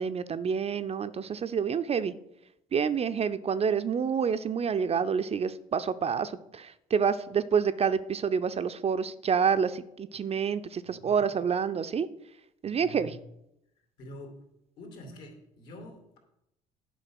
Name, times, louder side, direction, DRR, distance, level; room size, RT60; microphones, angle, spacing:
voice 1, 0.0-2.1 2.7-12.1 12.6-13.1, right 6 dB, 30° right, 12 dB, 0.6 m, -28 dB
voice 2, 10.8-11.3 12.6-13.1 14.0-14.4 14.8-16.2, equal, 65° left, 3 dB, 2.7 m, -46 dB
10.5 x 5.2 x 6.0 m, 0.82 s
figure-of-eight pair, 50°, 19 cm